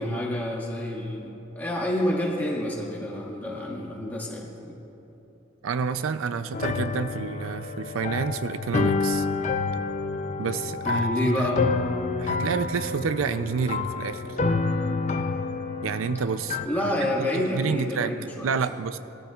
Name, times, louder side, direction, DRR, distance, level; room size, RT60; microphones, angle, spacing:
voice 1, 0.0-4.8 10.8-11.7 16.6-18.5, left 1 dB, 10° left, -3 dB, 1.7 m, -28 dB
voice 2, 5.6-9.3 10.4-11.5 12.2-14.4 15.8-16.9 17.3-18.1 18.4-19.0, right 5 dB, 85° right, 12 dB, 0.4 m, -29 dB
sound 1, 6.5-16.7, left 4 dB, 35° left, 0.4 m, -28 dB
20.5 x 13.5 x 2.4 m, 3.0 s
head